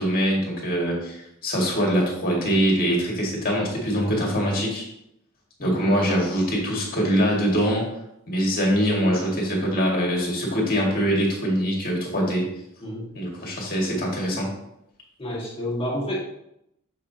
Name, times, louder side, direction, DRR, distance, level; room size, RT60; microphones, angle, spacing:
voice 1, 0.0-4.8 5.6-7.9 8.3-12.4 13.1-14.5, equal, 40° left, -2 dB, 1.9 m, -23 dB
voice 2, 5.6-6.2 12.8-13.1 15.2-16.2, equal, 25° left, -4 dB, 1.7 m, -30 dB
6.8 x 5.8 x 2.8 m, 0.79 s
head